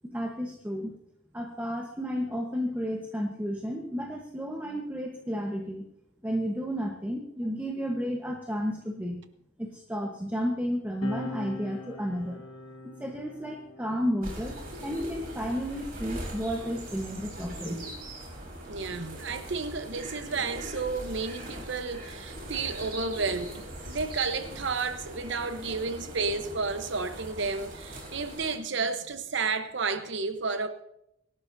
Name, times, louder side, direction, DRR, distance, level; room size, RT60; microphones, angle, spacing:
voice 1, 0.0-0.9 1.3-5.8 6.2-9.2 9.6-12.4 12.8-17.8, equal, 10° right, 1.2 m, -32 dB
sound 1, 11.0-17.9 18.9-20.7, left 2 dB, 85° left, 1.5 m, -45 dB
sound 2, 14.2-28.6, right 1 dB, 45° right, 4.3 m, -41 dB
voice 2, 18.6-30.7, right 4 dB, 60° right, 1.0 m, -32 dB
25.5 x 12.0 x 2.8 m
head